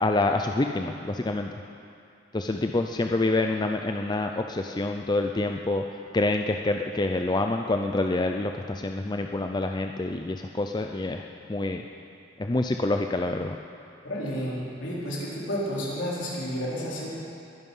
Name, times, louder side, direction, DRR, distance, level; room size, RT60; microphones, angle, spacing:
voice 1, 0.0-1.5 2.3-5.8 6.1-11.2 11.5-11.8 12.4-13.6, left 2 dB, 20° left, 4 dB, 0.5 m, -27 dB
voice 2, 14.0-17.1, equal, 70° left, -6 dB, 4.3 m, -31 dB
21.0 x 11.0 x 5.6 m, 2.5 s
head